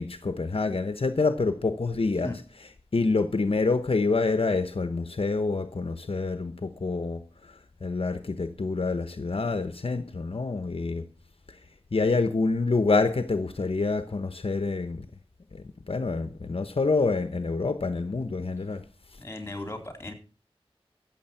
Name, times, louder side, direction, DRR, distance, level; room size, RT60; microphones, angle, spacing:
voice 1, 0.0-2.3 2.9-7.2 7.8-11.1 11.9-15.0 15.5-18.8, left 3 dB, 70° left, 0.9 m, -27 dB
voice 2, 19.2-20.1, left 2 dB, 25° left, 3.6 m, -36 dB
15.0 x 7.2 x 5.7 m
wide cardioid pair, 60°, 10 cm